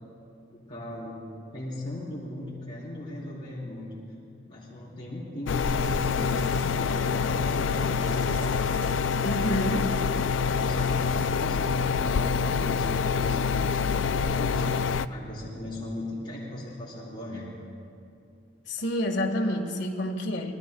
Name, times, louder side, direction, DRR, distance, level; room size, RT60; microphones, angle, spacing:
voice 1, 0.5-4.0 4.5-6.4 6.7-8.3 10.5-14.7 15.1-17.5, left 1 dB, 25° left, -8 dB, 4.1 m, -38 dB
sound 1, 5.5-15.1, left 5 dB, 90° left, 0.4 m, -26 dB
sound 2, 5.6-7.0 7.6-9.6 10.6-11.4 12.7-12.9, right 1 dB, 55° right, 4.1 m, -46 dB
voice 2, 9.2-10.0 18.7-20.5, equal, 75° left, 2 dB, 1.6 m, -28 dB
27.0 x 20.5 x 2.3 m, 2.5 s
head